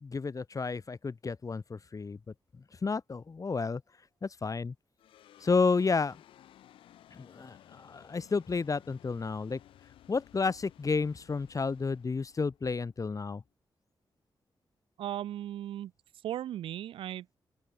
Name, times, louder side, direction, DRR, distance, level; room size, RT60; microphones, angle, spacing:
voice 1, 0.0-2.2 2.8-3.8 4.2-4.7 5.4-6.2 7.1-9.6 10.1-13.4, left 4 dB, 40° left, 0.8 m, -31 dB
sound 1, 5.0-13.5, left 12 dB, 90° left, 3.1 m, -58 dB
voice 2, 15.0-15.9 16.2-17.4, right 12 dB, 85° right, 1.1 m, -37 dB
open air
supercardioid pair, 45°, 9 cm